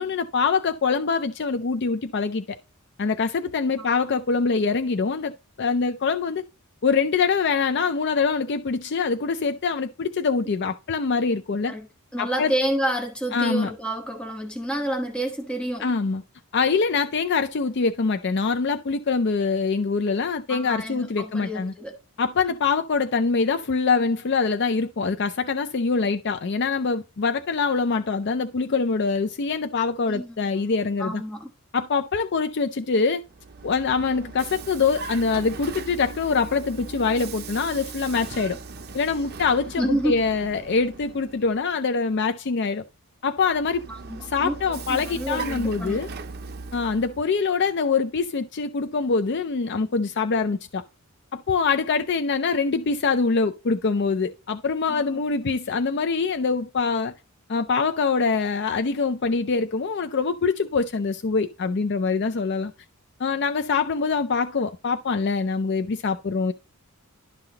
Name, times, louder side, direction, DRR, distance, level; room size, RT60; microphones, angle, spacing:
voice 1, 0.0-2.6 3.0-5.3 5.6-6.4 6.8-11.7 12.2-12.5 13.3-13.7 15.8-16.2 16.5-21.7 22.2-31.2 31.7-33.2 33.6-38.6 38.9-42.8 43.2-43.8 44.2-46.1 46.7-50.8 51.3-57.1 57.5-62.7 63.2-66.5, left 4 dB, 50° left, 0.5 m, -24 dB
voice 2, 12.1-15.9 20.5-22.0 30.1-30.7 31.0-31.5 39.8-40.1 43.9-44.5 44.9-46.0 54.9-55.2, right 1 dB, 5° left, 1.1 m, -29 dB
Vehicle, 33.2-41.7 43.4-47.3, right 4 dB, 45° right, 0.7 m, -39 dB
12.0 x 5.7 x 2.8 m
head